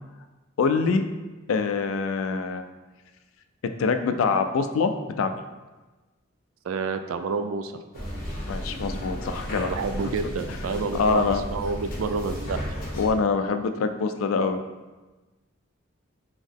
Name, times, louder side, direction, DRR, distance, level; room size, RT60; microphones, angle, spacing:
voice 1, 0.6-1.1 1.5-2.6 3.8-4.9 5.2-5.4 8.5-9.8 10.9-11.4 12.9-14.6, left 4 dB, 80° left, 8 dB, 0.4 m, -24 dB
voice 2, 6.6-8.0 9.6-12.6, right 4 dB, 80° right, 8 dB, 0.3 m, -29 dB
sound 1, 7.9-13.1, equal, 45° left, 1.2 m, -33 dB
3.8 x 3.0 x 3.5 m, 1.2 s
head